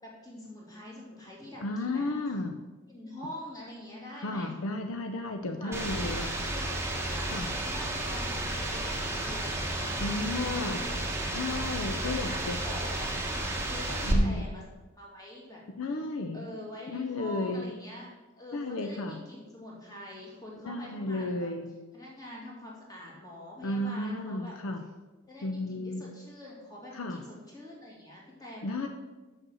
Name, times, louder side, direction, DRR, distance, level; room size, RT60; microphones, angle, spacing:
voice 1, 0.0-2.0 2.9-4.5 5.4-6.1 6.5-6.7 7.0-11.6 12.2-13.1 13.6-14.6 15.0-15.6 16.3-18.1 18.4-21.5 21.9-24.5 25.3-28.7, left 1 dB, 15° left, -3 dB, 2.1 m, -45 dB
voice 2, 1.6-2.5 4.2-6.3 7.3-7.5 10.0-10.8 11.3-12.6 14.0-14.4 15.8-16.4 16.9-17.7 18.5-19.2 20.6-21.7 23.6-24.8 25.4-26.0 26.9-27.2 28.6-28.9, left 2 dB, 65° left, 6 dB, 0.6 m, -33 dB
sound 1, 5.7-14.1, right 1 dB, 10° right, 1.1 m, -32 dB
6.5 x 6.2 x 6.3 m, 1.2 s
head